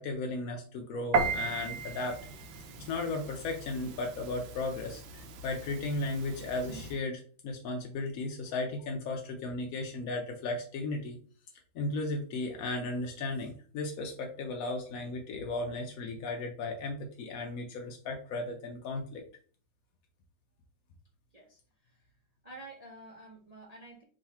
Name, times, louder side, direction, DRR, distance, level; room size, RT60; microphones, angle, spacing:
voice 1, 0.0-2.2 2.9-11.2 11.7-19.2, left 2 dB, 70° left, 2 dB, 0.8 m, -35 dB
Piano, 1.1-7.0, right 4 dB, 90° right, 1.4 m, -36 dB
voice 2, 21.3-22.1 22.4-24.0, right 2 dB, 35° right, -3 dB, 0.6 m, -50 dB
3.7 x 3.1 x 4.1 m, 0.43 s
omnidirectional pair, 2.1 m